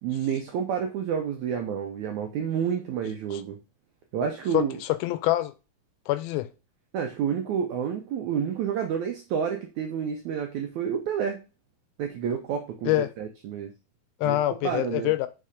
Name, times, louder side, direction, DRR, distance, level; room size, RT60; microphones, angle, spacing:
voice 1, 0.0-3.6 4.1-4.8 6.9-11.4 12.0-13.7 14.2-14.4 14.6-15.1, right 7 dB, 80° right, 1.7 m, -29 dB
voice 2, 4.5-5.5 6.1-6.5 12.8-13.1 14.2-15.3, left 15 dB, 85° left, 2.3 m, -25 dB
5.6 x 4.1 x 5.0 m
omnidirectional pair, 4.3 m